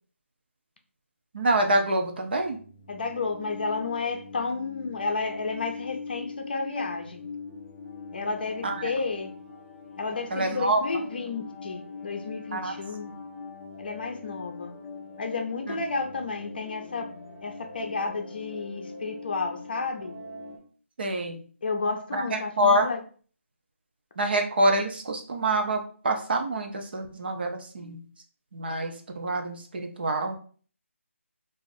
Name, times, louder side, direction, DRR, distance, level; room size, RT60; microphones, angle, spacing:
voice 1, 1.3-2.6 8.6-8.9 10.3-10.8 12.5-12.8 15.7-15.8 21.0-21.4 22.1-22.9 24.2-28.0 28.5-30.4, right 1 dB, 45° right, 3 dB, 0.6 m, -26 dB
sound 1, 2.2-20.6, left 4 dB, ahead, 0.6 m, -42 dB
voice 2, 2.9-7.3 8.1-9.3 10.0-13.1 13.8-14.7 15.2-17.1 17.4-20.1 21.6-23.0, left 4 dB, 45° left, 4 dB, 0.5 m, -32 dB
2.5 x 2.5 x 4.0 m, 0.43 s
figure-of-eight pair, 160°, 7 cm